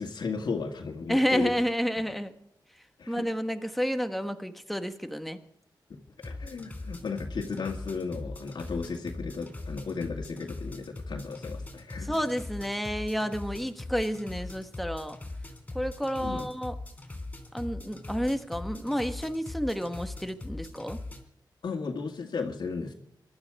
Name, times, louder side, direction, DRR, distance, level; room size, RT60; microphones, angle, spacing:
voice 1, 0.0-1.5 3.0-3.3 5.9-12.2 16.2-16.5 21.6-22.9, left 4 dB, 70° left, 1 dB, 1.9 m, -35 dB
voice 2, 1.1-2.3 3.1-5.4 12.1-15.2 15.7-16.7 17.5-21.0, equal, ahead, 8 dB, 1.3 m, -30 dB
sound 1, 6.2-21.2, left 2 dB, 20° left, 3.7 m, -40 dB
22.5 x 12.5 x 4.8 m, 0.72 s
wide cardioid pair, 125°, 8 cm